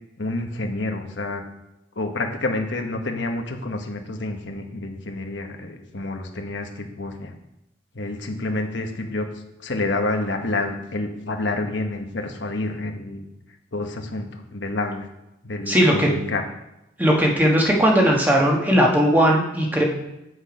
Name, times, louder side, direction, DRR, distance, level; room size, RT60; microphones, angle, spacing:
voice 1, 0.2-1.4 2.0-7.3 7.9-9.3 9.6-13.3 13.7-15.1 15.4-16.4, left 2 dB, 75° left, 4 dB, 1.2 m, -28 dB
voice 2, 15.7-16.1 17.0-19.8, equal, 10° right, -1 dB, 1.2 m, -18 dB
8.3 x 6.3 x 5.1 m, 0.91 s
head